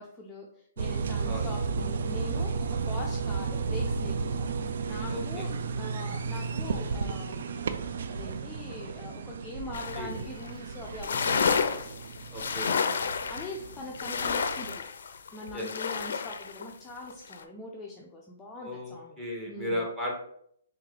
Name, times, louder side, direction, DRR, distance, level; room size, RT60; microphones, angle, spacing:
voice 1, 0.0-4.5 4.8-5.5 5.8-7.6 7.9-11.7 12.7-14.9 15.3-19.2 19.5-19.8, left 2 dB, 10° left, -3 dB, 0.5 m, -42 dB
sound 1, 0.8-14.8, right 5 dB, 65° right, 0.4 m, -33 dB
voice 2, 5.1-5.4 9.9-10.1 12.3-12.7 15.5-16.0 18.6-20.1, left 1 dB, 10° right, -2 dB, 1.1 m, -35 dB
sound 2, 9.7-10.1 10.4-10.5 10.8-16.6 17.1-17.4, left 5 dB, 70° left, 0.4 m, -30 dB
3.2 x 3.1 x 3.7 m, 0.70 s
hypercardioid pair, 155°, 0 cm